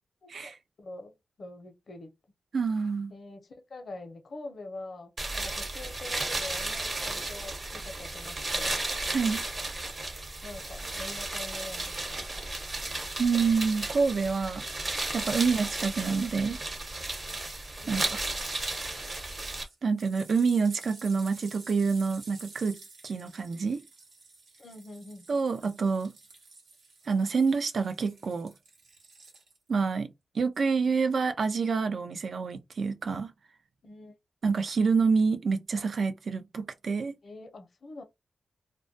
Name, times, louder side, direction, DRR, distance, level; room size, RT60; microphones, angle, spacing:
voice 1, 0.2-2.1 3.1-8.8 10.4-12.3 17.7-18.2 24.6-25.3 33.8-34.1 37.2-38.0, left 2 dB, 65° left, 0.6 m, -44 dB
voice 2, 2.5-3.1 9.1-9.4 13.2-14.7 15.1-16.6 17.9-18.2 19.8-22.8 23.0-23.8 25.3-26.1 27.1-28.5 29.7-33.3 34.4-37.2, right 5 dB, 65° right, 0.4 m, -27 dB
sound 1, 5.2-19.6, right 2 dB, 45° right, 0.9 m, -34 dB
sound 2, 18.9-19.1 19.6-29.8 30.6-30.7, right 3 dB, 85° right, 0.8 m, -51 dB
2.2 x 2.1 x 2.6 m
cardioid pair, 60°, 0 cm